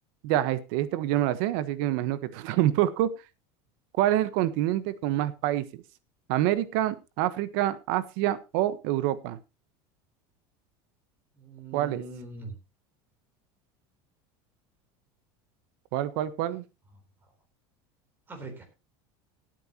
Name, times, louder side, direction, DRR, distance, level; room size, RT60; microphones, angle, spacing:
voice 1, 0.2-3.1 4.0-5.8 6.3-9.4 11.7-12.0 15.9-16.6, right 13 dB, 60° right, 15 dB, 1.3 m, -26 dB
voice 2, 11.4-12.5 18.3-18.6, right 3 dB, 15° right, 5 dB, 3.8 m, -41 dB
18.5 x 9.1 x 3.0 m, 0.28 s
cardioid pair, 160°, 12 cm